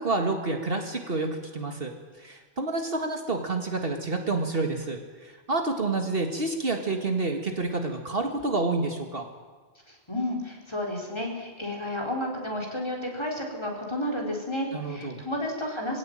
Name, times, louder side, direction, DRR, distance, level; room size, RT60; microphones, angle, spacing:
voice 1, 0.0-9.3 14.7-15.2, right 3 dB, 55° right, 4 dB, 2.1 m, -29 dB
voice 2, 9.9-16.0, left 1 dB, 25° left, 1 dB, 4.4 m, -31 dB
22.0 x 17.0 x 9.0 m, 1.4 s
omnidirectional pair, 1.2 m